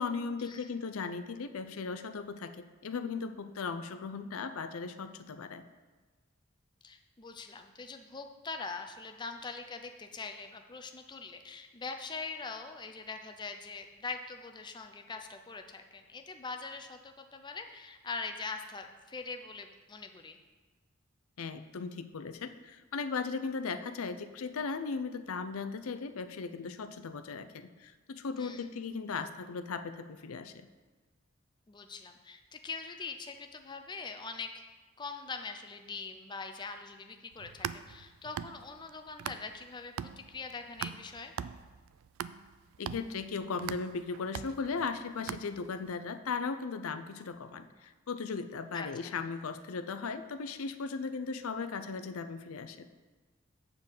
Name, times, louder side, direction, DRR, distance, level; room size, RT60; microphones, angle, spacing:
voice 1, 0.0-5.6 21.4-30.7 42.8-52.9, left 4 dB, 85° left, 10 dB, 0.5 m, -37 dB
voice 2, 6.8-20.4 28.3-28.7 31.7-34.7 35.0-39.9 40.3-41.3 48.7-48.9, left 4 dB, 20° left, 5 dB, 0.5 m, -42 dB
sound 1, 37.3-39.7 40.0-45.9, right 8 dB, 80° right, 0.3 m, -41 dB
7.8 x 4.5 x 7.1 m, 1.3 s
head